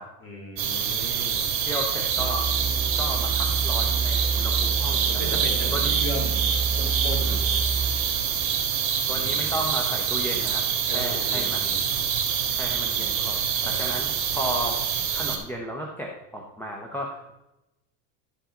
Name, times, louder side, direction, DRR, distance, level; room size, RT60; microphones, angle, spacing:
voice 1, 0.2-1.4 5.0-7.4 9.1-9.5 10.9-11.9 13.6-14.1, equal, 30° left, -1 dB, 2.7 m, -37 dB
sound 1, 0.6-15.4, right 8 dB, 50° right, 1.9 m, -26 dB
voice 2, 1.7-2.5 3.0-5.4 5.7-5.9 7.2-7.4 9.1-11.7 12.5-14.8 15.1-17.3, equal, 5° left, -1 dB, 0.7 m, -34 dB
sound 2, 2.2-9.7, right 4 dB, 85° right, 1.0 m, -29 dB
11.5 x 5.5 x 3.7 m, 0.94 s
cardioid pair, 145°, 43 cm